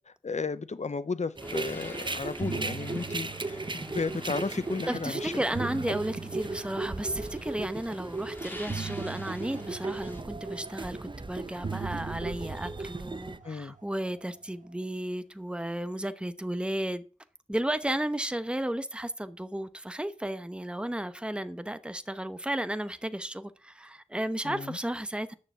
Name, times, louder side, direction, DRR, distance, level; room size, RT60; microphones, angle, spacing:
voice 1, 0.2-5.3 13.4-13.8 24.4-24.8, left 4 dB, 60° left, 0.7 m, -34 dB
sound 1, 1.4-10.2, left 1 dB, 15° left, 2.8 m, -47 dB
sound 2, 1.4-13.4, right 3 dB, 35° right, 0.8 m, -37 dB
sound 3, 1.7-2.0 2.2-4.6 5.2-7.7 8.7-11.1 11.6-14.2, right 5 dB, 75° right, 1.3 m, -41 dB
voice 2, 4.9-17.0 17.5-25.3, right 1 dB, 5° right, 0.9 m, -33 dB
9.7 x 6.7 x 7.3 m
wide cardioid pair, 65°, 13 cm